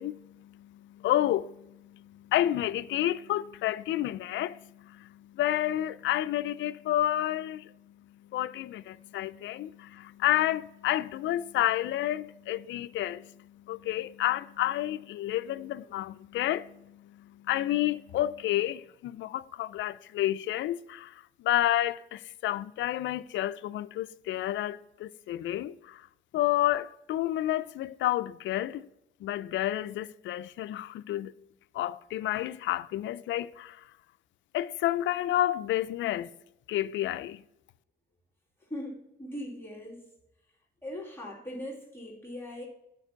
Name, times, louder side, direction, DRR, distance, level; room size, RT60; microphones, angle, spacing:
voice 1, 0.0-7.7 8.3-26.1 26.3-28.8 29.2-31.3 31.7-33.8 34.5-36.3 36.7-37.4, left 13 dB, 70° left, 0.4 m, -30 dB
voice 2, 38.7-40.0 40.8-42.7, left 1 dB, 10° left, 2.2 m, -40 dB
9.1 x 5.2 x 5.7 m
cardioid pair, 90°, 20 cm